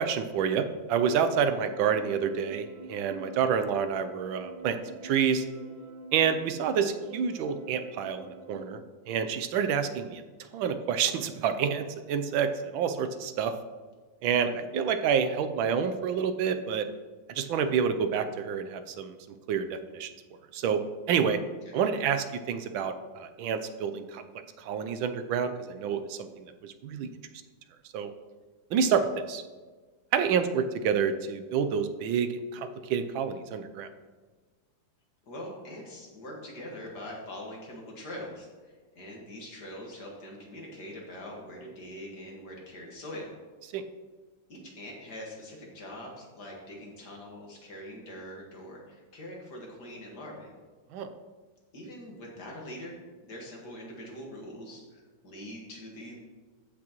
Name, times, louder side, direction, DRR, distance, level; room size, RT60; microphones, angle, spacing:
voice 1, 0.0-4.8 5.0-5.4 6.1-8.8 9.1-10.2 10.5-13.5 14.2-16.9 17.3-19.2 19.5-20.1 20.5-20.8 21.1-21.4 21.7-24.3 24.6-27.1 27.9-28.1 28.7-29.4 30.1-33.9 43.7-43.8 50.9-51.1, right 7 dB, 85° right, 9 dB, 1.4 m, -28 dB
sound 1, 1.0-8.7, right 2 dB, 55° right, 1.9 m, -47 dB
voice 2, 14.3-14.6 21.7-21.8 28.8-29.1 35.3-43.3 44.5-50.5 51.7-53.0 53.2-56.2, left 1 dB, 55° left, -1 dB, 2.2 m, -43 dB
14.5 x 6.1 x 3.0 m, 1.4 s
omnidirectional pair, 2.2 m